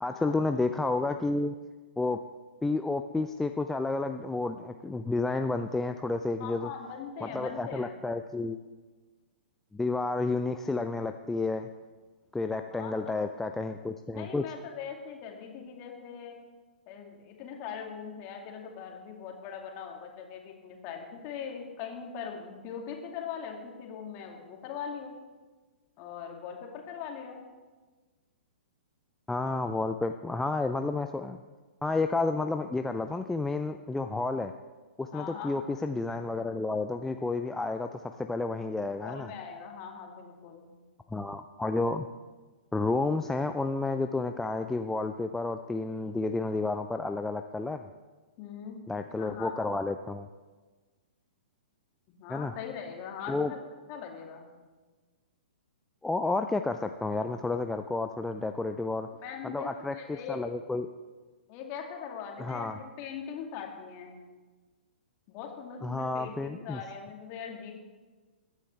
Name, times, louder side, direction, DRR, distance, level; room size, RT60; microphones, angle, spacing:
voice 1, 0.0-1.5 2.0-2.2 2.6-6.7 7.2-8.6 9.7-11.7 12.3-14.4 29.3-31.4 31.8-34.5 35.0-39.3 41.1-42.1 42.7-47.9 48.9-50.3 52.3-52.5 53.3-53.5 56.0-59.1 59.4-60.9 62.4-62.8 65.8-66.8, left 3 dB, 5° left, 6 dB, 0.4 m, -31 dB
voice 2, 6.4-8.0 12.7-13.3 14.1-16.4 16.9-25.1 26.0-27.4 35.1-35.6 38.9-40.7 48.4-48.8 49.2-49.5 52.1-54.5 59.2-60.5 61.5-64.2 65.3-67.7, left 7 dB, 35° left, 2 dB, 2.2 m, -41 dB
22.0 x 9.6 x 3.3 m, 1.3 s
figure-of-eight pair, 115°, 6 cm